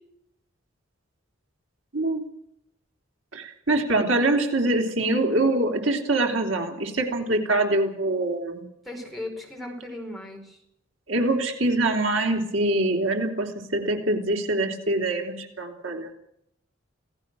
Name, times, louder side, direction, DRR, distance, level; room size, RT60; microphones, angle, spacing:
voice 1, 3.3-8.7 11.1-16.1, right 2 dB, 80° right, 2 dB, 3.5 m, -24 dB
voice 2, 8.8-10.6, left 1 dB, ahead, 0 dB, 4.9 m, -37 dB
27.5 x 17.5 x 6.3 m, 0.76 s
head